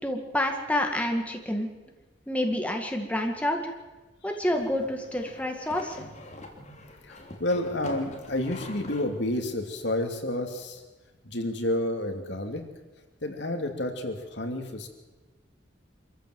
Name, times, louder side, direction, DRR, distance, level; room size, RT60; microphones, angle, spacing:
voice 1, 0.0-1.7 2.3-3.7 4.2-6.0, left 1 dB, 10° left, 3 dB, 2.0 m, -28 dB
sound 1, 4.5-9.1, left 1 dB, 40° left, 3.1 m, -44 dB
voice 2, 7.0-10.8 11.2-12.6 13.2-14.9, left 1 dB, 65° left, 4 dB, 2.7 m, -30 dB
26.0 x 14.5 x 7.9 m, 1.2 s
head